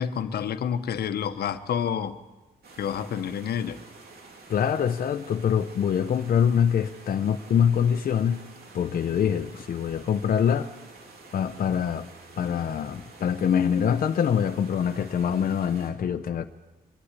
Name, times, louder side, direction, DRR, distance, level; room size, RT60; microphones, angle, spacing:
voice 1, 0.0-2.2 2.8-3.8 9.5-9.6, left 8 dB, 90° left, 10 dB, 1.1 m, -29 dB
sound 1, 2.6-15.9, right 3 dB, 80° right, 3.8 m, -49 dB
voice 2, 4.5-8.5 8.7-10.7 11.3-12.1 12.4-16.5, left 8 dB, 65° left, 7 dB, 0.8 m, -24 dB
23.0 x 12.0 x 9.8 m, 1.1 s
wide cardioid pair, 125°, 16 cm